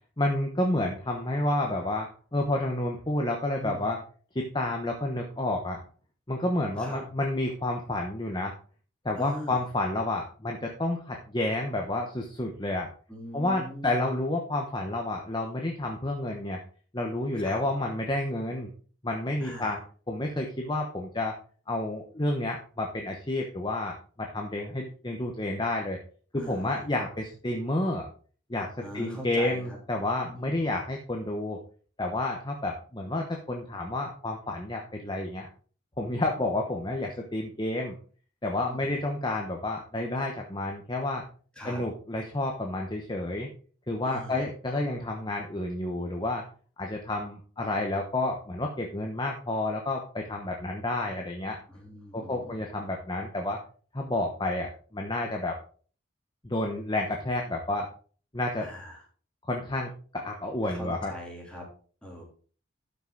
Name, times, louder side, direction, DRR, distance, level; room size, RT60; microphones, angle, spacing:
voice 1, 0.2-4.0 4.3-5.8 6.3-8.5 9.0-12.9 13.3-16.6 16.9-18.7 19.0-19.8 20.1-21.4 21.7-26.0 26.3-28.1 28.5-28.7 28.9-31.6 32.0-35.5 36.0-37.9 38.4-41.2 41.6-43.5 43.9-46.4 46.8-51.6 52.1-53.6 53.9-55.6 56.4-57.9 58.3-58.7 59.5-61.1, left 1 dB, 20° left, 1 dB, 1.0 m, -30 dB
voice 2, 3.6-3.9 6.8-7.0 9.2-9.6 13.1-14.0 17.4-17.6 19.4-19.8 26.3-26.8 28.8-29.8 30.3-30.7 38.5-38.9 41.5-41.8 44.0-44.4 51.7-52.9 58.6-59.0 60.6-61.7 62.0-62.2, equal, 5° left, -2 dB, 3.2 m, -41 dB
12.0 x 6.0 x 3.9 m, 0.42 s
head